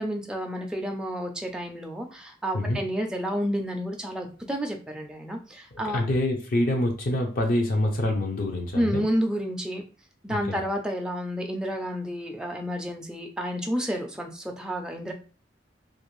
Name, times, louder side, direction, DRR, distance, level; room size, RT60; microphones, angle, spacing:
voice 1, 0.0-6.0 8.7-9.8 10.2-15.1, equal, 5° right, 2 dB, 0.3 m, -30 dB
voice 2, 5.7-9.0 10.3-10.6, left 1 dB, 50° left, 1 dB, 0.6 m, -26 dB
2.4 x 2.4 x 3.0 m, 0.36 s
head